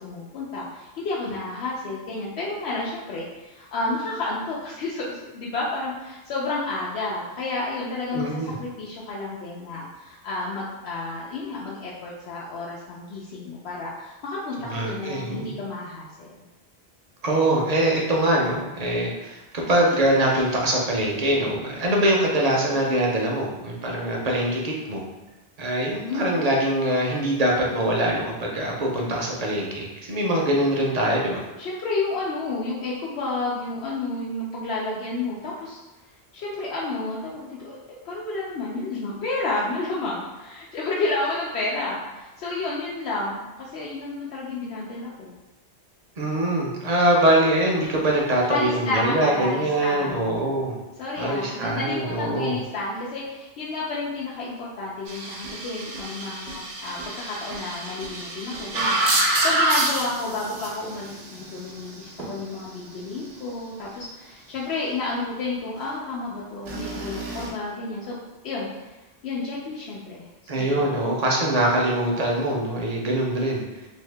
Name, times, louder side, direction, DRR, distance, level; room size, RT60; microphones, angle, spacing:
voice 1, 0.0-16.4 26.1-26.3 31.6-35.8 36.3-37.8 38.0-45.4 48.4-50.3 51.0-68.2 68.4-68.9 69.2-70.3 70.5-70.9, left 2 dB, 80° left, -6 dB, 0.8 m, -31 dB
voice 2, 8.1-8.6 14.7-15.5 17.2-25.0 25.6-31.4 46.2-50.8 51.2-52.6 70.5-73.6, right 1 dB, 45° right, -2 dB, 0.7 m, -23 dB
sound 1, 55.1-62.4 66.7-67.5, right 2 dB, 80° right, 0.9 m, -27 dB
2.7 x 2.7 x 3.2 m, 1.1 s
omnidirectional pair, 1.1 m